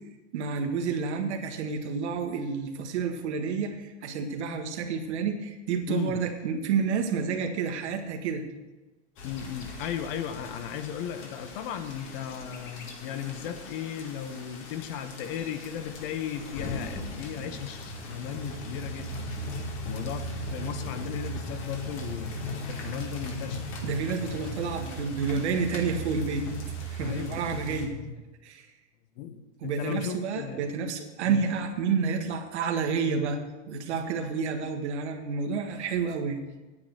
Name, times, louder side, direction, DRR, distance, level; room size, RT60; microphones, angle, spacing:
voice 1, 0.3-8.4 23.8-26.5 26.8-28.0 28.4-28.7 29.6-33.4 33.7-36.4, right 5 dB, 75° right, 5 dB, 1.8 m, -29 dB
voice 2, 5.9-6.2 9.2-19.3 19.8-22.3 22.7-23.7 27.0-28.1 29.2-30.6 31.2-31.4, left 9 dB, 50° left, 9 dB, 1.2 m, -36 dB
sound 1, 9.2-27.9, equal, 35° left, 2.1 m, -38 dB
9.6 x 8.8 x 6.5 m, 1.1 s
supercardioid pair, 135°, 34 cm